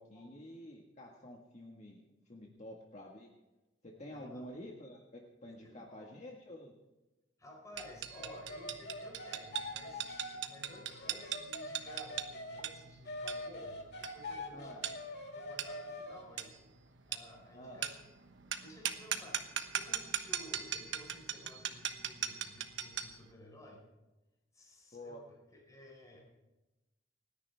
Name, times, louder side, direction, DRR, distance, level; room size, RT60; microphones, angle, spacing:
voice 1, 0.0-2.0 2.3-3.3 3.8-6.7 14.5-14.8 17.5-17.8 24.9-25.2, left 1 dB, 40° left, -1 dB, 1.7 m, -49 dB
voice 2, 4.0-4.4 5.5-6.1 7.4-14.9 15.3-16.6 17.0-18.0 18.6-23.9 24.5-26.3, left 1 dB, 20° left, -2 dB, 4.6 m, -54 dB
sound 1, 7.8-23.2, right 9 dB, 75° right, 1.1 m, -40 dB
sound 2, 8.1-12.6 13.0-16.2, left 1 dB, 65° left, 2.3 m, -44 dB
29.0 x 10.0 x 3.5 m, 1.0 s
head